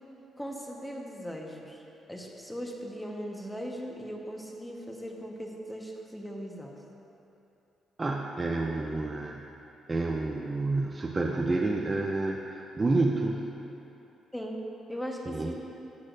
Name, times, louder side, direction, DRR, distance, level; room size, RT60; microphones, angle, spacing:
voice 1, 0.4-1.8 2.1-6.8 14.3-14.6 14.9-15.5, equal, 5° left, -1 dB, 1.2 m, -38 dB
voice 2, 8.0-9.4 9.9-13.5 15.3-15.5, right 2 dB, 25° right, 0 dB, 0.6 m, -29 dB
12.5 x 8.4 x 2.6 m, 3.0 s
cardioid pair, 90°, 0 cm